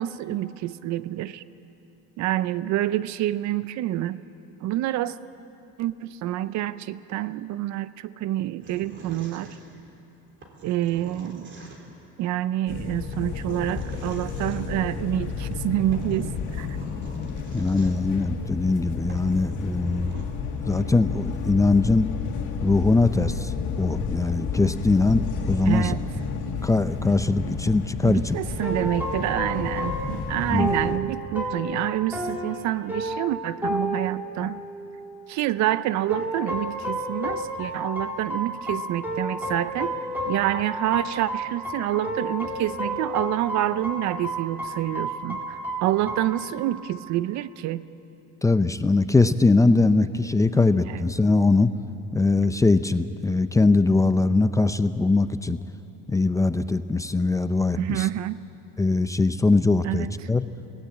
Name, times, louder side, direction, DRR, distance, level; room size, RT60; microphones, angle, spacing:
voice 1, 0.0-1.4 2.2-4.2 4.6-5.2 5.8-9.5 10.6-11.5 12.2-16.8 25.6-26.0 28.0-34.6 35.3-39.9 40.3-47.8 50.6-51.0 57.8-58.4 59.8-60.1, right 14 dB, 60° right, 16 dB, 0.7 m, -27 dB
sound 1, 8.6-10.0 10.4-12.1 13.1-14.6 15.6-15.7 15.9-18.2 18.7-18.8 19.1-20.2, right 2 dB, 35° right, 3.6 m, -46 dB
sound 2, 12.7-31.0, left 6 dB, 70° left, 2.3 m, -32 dB
voice 2, 17.5-20.2 20.6-22.1 22.6-25.9 26.6-28.4 30.5-30.7 48.4-51.7 52.1-55.6 56.1-58.1 58.8-60.5, left 3 dB, 10° left, 12 dB, 0.5 m, -21 dB
sound 3, 28.6-35.2 36.1-47.0, equal, 5° right, 4.2 m, -32 dB
21.5 x 18.0 x 8.5 m, 3.0 s
cardioid pair, 110°, 31 cm